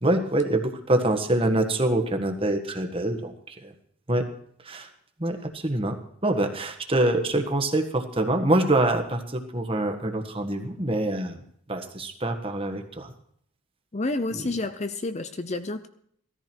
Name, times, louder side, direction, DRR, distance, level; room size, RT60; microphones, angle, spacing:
voice 1, 0.0-3.7 4.1-4.2 4.6-4.9 5.2-6.0 6.2-11.4 11.7-13.1, right 1 dB, 25° right, 6 dB, 1.5 m, -25 dB
voice 2, 13.9-15.9, left 2 dB, 30° left, 10 dB, 0.6 m, -29 dB
17.0 x 14.0 x 4.5 m, 0.65 s
head